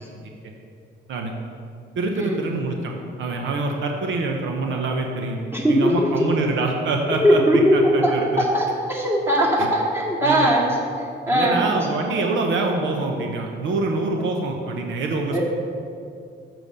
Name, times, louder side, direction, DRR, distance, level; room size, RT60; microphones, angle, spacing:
voice 1, 2.0-2.9 3.2-5.4 5.7-7.4 7.7-8.5 9.6-9.7 10.2-10.5 11.3-15.4, right 3 dB, 75° right, 2 dB, 0.9 m, -25 dB
voice 2, 5.5-6.1 7.2-8.1 8.4-10.7 11.3-11.6 15.3-15.4, equal, 10° right, -4 dB, 2.2 m, -19 dB
7.1 x 6.0 x 6.7 m, 2.4 s
cardioid pair, 90°, 20 cm